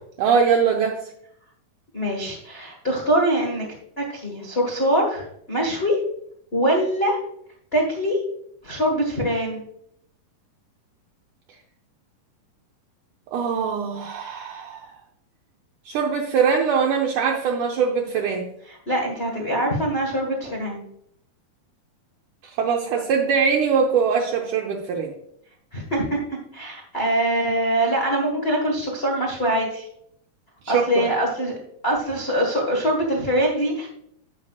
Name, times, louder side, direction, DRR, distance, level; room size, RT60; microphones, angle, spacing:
voice 1, 0.2-1.0 13.3-14.9 15.9-18.5 22.4-25.1 30.7-31.1, right 6 dB, 75° right, 0 dB, 2.1 m, -22 dB
voice 2, 1.9-3.7 4.0-5.9 6.5-7.2 7.7-8.2 8.6-9.6 18.9-20.8 25.7-26.2 26.5-29.9 30.7-31.5 31.8-33.9, right 1 dB, 75° left, -2 dB, 0.5 m, -23 dB
10.5 x 8.1 x 2.4 m, 0.70 s
omnidirectional pair, 4.0 m